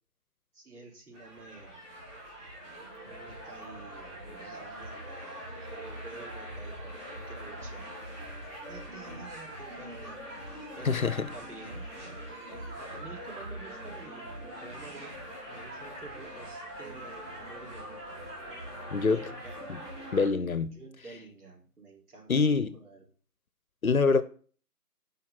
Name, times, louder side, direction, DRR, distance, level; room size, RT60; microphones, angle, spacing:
voice 1, 0.5-1.7 3.0-7.9 8.7-11.9 12.7-15.1 15.5-18.1 18.4-19.7 20.7-22.4 22.7-23.0, right 3 dB, 65° right, 4.1 m, -49 dB
sound 1, 1.1-20.3, right 1 dB, 20° right, 3.3 m, -42 dB
voice 2, 10.8-11.3 18.9-19.3 19.7-19.8 20.1-20.8 22.3-22.8 23.8-24.2, left 4 dB, 60° left, 1.0 m, -25 dB
10.5 x 5.8 x 5.8 m
figure-of-eight pair, 160°, 48 cm